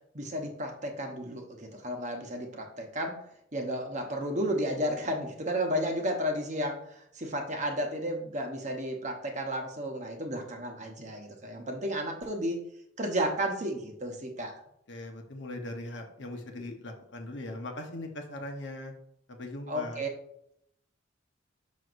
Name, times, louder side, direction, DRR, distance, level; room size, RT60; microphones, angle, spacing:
voice 1, 0.1-3.3 3.5-12.6 13.0-14.6 19.7-20.1, equal, 40° right, 3 dB, 1.0 m, -33 dB
voice 2, 14.9-18.9 19.3-20.1, left 1 dB, 60° left, 3 dB, 1.0 m, -40 dB
6.2 x 6.1 x 2.6 m, 0.73 s
head